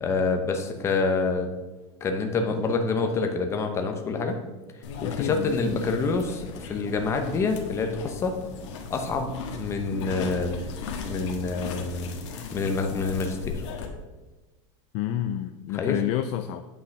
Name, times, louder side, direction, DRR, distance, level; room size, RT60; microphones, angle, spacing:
voice 1, 0.0-1.5 2.0-4.4 5.0-8.4 8.9-10.6 11.0-12.2 12.5-13.6 15.7-16.0, left 4 dB, 15° left, 5 dB, 0.8 m, -27 dB
sound 1, 4.8-13.9, left 5 dB, 70° left, 1.5 m, -37 dB
voice 2, 5.0-5.7 14.9-16.6, left 12 dB, 40° left, 8 dB, 0.4 m, -29 dB
8.7 x 5.5 x 5.8 m, 1.2 s
supercardioid pair, 175°, 16 cm